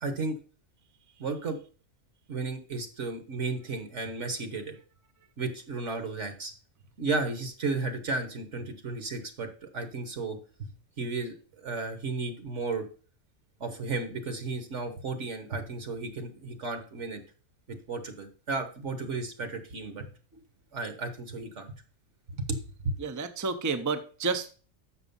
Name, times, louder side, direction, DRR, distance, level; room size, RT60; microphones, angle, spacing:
voice 1, 0.0-0.4 1.2-1.6 2.3-4.8 5.4-6.5 7.0-10.7 11.0-11.3 11.6-12.8 13.6-17.2 17.7-20.1 20.7-21.7 22.4-22.6 22.8-22.9, right 3 dB, 60° right, 7 dB, 1.4 m, -33 dB
voice 2, 23.0-24.6, right 4 dB, 25° right, 9 dB, 0.4 m, -30 dB
6.8 x 6.1 x 5.4 m, 0.39 s
omnidirectional pair, 1.4 m